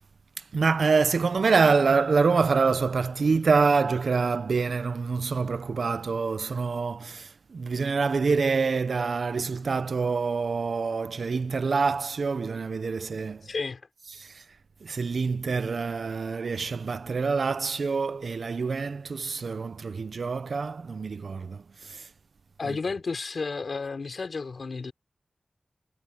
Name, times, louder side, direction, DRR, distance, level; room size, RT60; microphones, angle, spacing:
voice 1, 0.5-13.4 14.2-14.4 14.8-22.1 22.7-22.8, right 4 dB, 85° right, 0.5 m, -26 dB
voice 2, 13.4-13.8 22.6-24.9, left 4 dB, 75° left, 5.1 m, -32 dB
wide cardioid pair, 70°, 0 cm